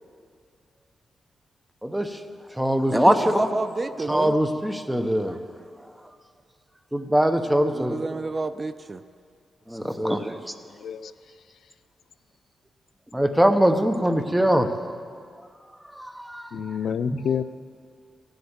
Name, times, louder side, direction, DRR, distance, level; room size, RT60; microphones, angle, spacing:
voice 1, 1.8-2.2 2.5-3.5 4.1-5.5 5.7-6.1 6.9-8.2 9.7-10.5 13.1-14.9 15.6-17.3, equal, 5° right, 8 dB, 0.8 m, -23 dB
voice 2, 3.2-4.3 7.7-9.0, right 3 dB, 30° right, 12 dB, 0.4 m, -30 dB
voice 3, 10.8-11.1 16.5-17.4, left 8 dB, 75° left, 14 dB, 0.4 m, -28 dB
15.0 x 8.0 x 8.9 m, 2.2 s
wide cardioid pair, 130°, 0 cm